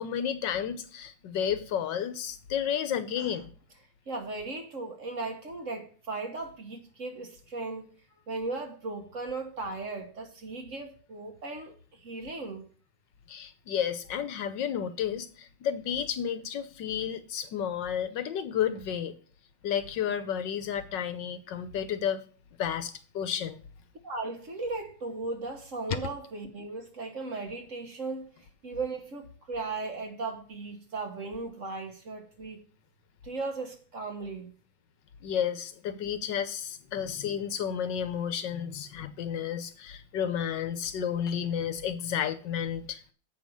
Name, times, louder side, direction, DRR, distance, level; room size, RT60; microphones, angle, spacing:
voice 1, 0.0-3.5 13.3-19.1 19.6-22.2 22.6-23.6 35.2-43.0, left 8 dB, 70° left, 1.4 m, -32 dB
voice 2, 4.1-7.9 8.3-12.6 24.0-32.6 33.2-34.5, right 3 dB, 45° right, 1.4 m, -37 dB
7.9 x 5.3 x 7.6 m
omnidirectional pair, 2.1 m